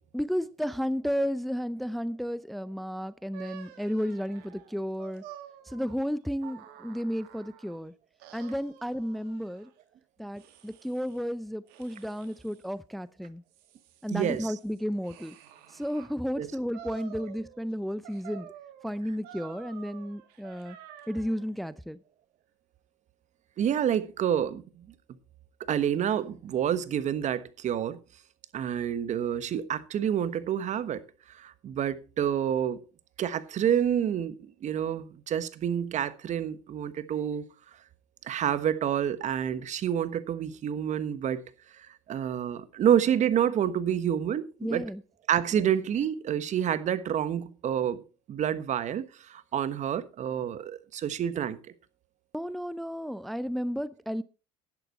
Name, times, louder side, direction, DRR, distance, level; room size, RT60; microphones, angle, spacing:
voice 1, 0.1-5.2 5.7-7.9 8.3-9.7 10.2-13.4 14.0-15.3 15.7-18.5 18.8-20.8 21.1-22.0 44.6-45.0 45.5-45.6 52.3-54.2, equal, ahead, 0.5 m, -33 dB
sound 1, 3.3-7.8 8.2-9.7 10.3-11.3 11.7-12.7 13.3-16.1 16.7-17.7 18.0-21.5, right 9 dB, 70° right, 2.4 m, -50 dB
voice 2, 14.1-14.6 16.4-16.5 23.6-24.9 25.7-28.0 28.5-31.0 31.3-32.8 33.2-37.4 38.2-41.4 41.8-44.8 45.3-48.0 48.3-51.6, right 9 dB, 50° right, 1.3 m, -28 dB
11.5 x 10.5 x 4.2 m
hypercardioid pair, 80°, 16 cm